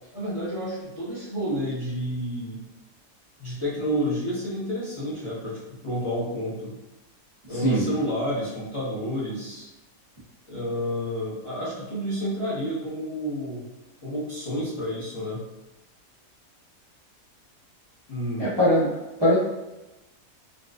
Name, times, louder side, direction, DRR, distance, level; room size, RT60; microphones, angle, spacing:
voice 1, 0.1-2.6 3.4-6.7 7.5-9.7 10.5-13.6 14.0-15.4 18.1-18.5, equal, 25° left, -9 dB, 0.9 m, -30 dB
voice 2, 18.4-18.9 19.2-19.4, equal, 25° right, -10 dB, 0.5 m, -20 dB
4.0 x 2.5 x 2.5 m, 0.99 s
omnidirectional pair, 1.7 m